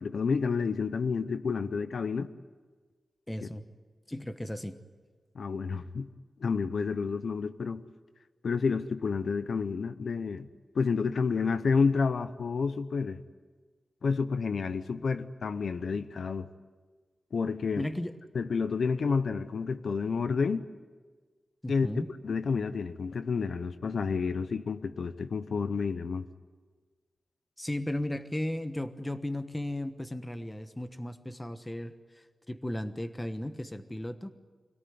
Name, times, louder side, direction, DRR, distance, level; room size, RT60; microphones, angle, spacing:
voice 1, 0.0-2.3 5.3-6.1 6.4-7.8 8.4-10.5 10.7-13.2 14.0-16.5 17.3-17.9 18.3-20.6 21.7-21.9 22.2-26.3, left 5 dB, 75° left, 11 dB, 0.8 m, -30 dB
voice 2, 3.3-3.6 4.1-4.8 17.7-18.2 21.6-22.1 27.6-34.3, left 1 dB, 10° left, 10 dB, 1.1 m, -35 dB
25.5 x 17.5 x 9.5 m, 1.4 s
wide cardioid pair, 125°, 0 cm